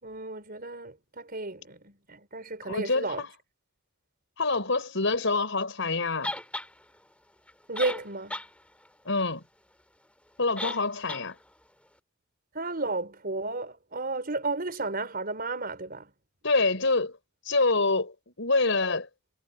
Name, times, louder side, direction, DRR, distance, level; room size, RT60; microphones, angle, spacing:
voice 1, 0.0-3.2 7.7-8.4 12.5-16.1, right 2 dB, 45° right, 5.0 m, -33 dB
voice 2, 2.6-3.3 4.4-6.3 9.0-9.4 10.4-11.4 16.4-17.2 17.4-19.1, left 3 dB, 65° left, 6.2 m, -26 dB
sound 1, 6.2-6.7 7.5-7.6 7.8-8.5 8.9-9.0 10.6-10.8 11.1-11.2, left 1 dB, 5° left, 5.7 m, -34 dB
head